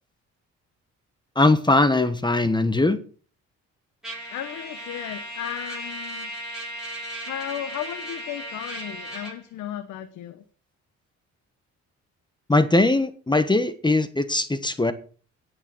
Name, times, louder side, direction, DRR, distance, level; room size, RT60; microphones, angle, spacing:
voice 1, 1.3-3.0 12.5-14.9, left 2 dB, 15° left, 1.3 m, -20 dB
Trumpet, 4.0-9.4, right 1 dB, ahead, 7.7 m, -36 dB
voice 2, 4.3-6.3 7.2-10.4, left 11 dB, 85° left, 1.1 m, -35 dB
17.0 x 6.6 x 6.2 m
cardioid pair, 90°, 30 cm